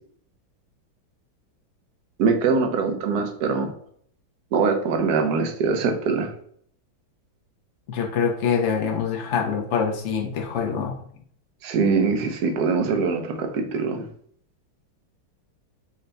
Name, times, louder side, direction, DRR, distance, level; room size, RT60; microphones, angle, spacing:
voice 1, 2.2-3.7 4.5-6.3 11.6-14.1, right 4 dB, 65° right, 4 dB, 1.1 m, -23 dB
voice 2, 7.9-11.0, left 6 dB, 85° left, 1 dB, 0.6 m, -25 dB
5.6 x 2.2 x 3.9 m, 0.62 s
omnidirectional pair, 2.2 m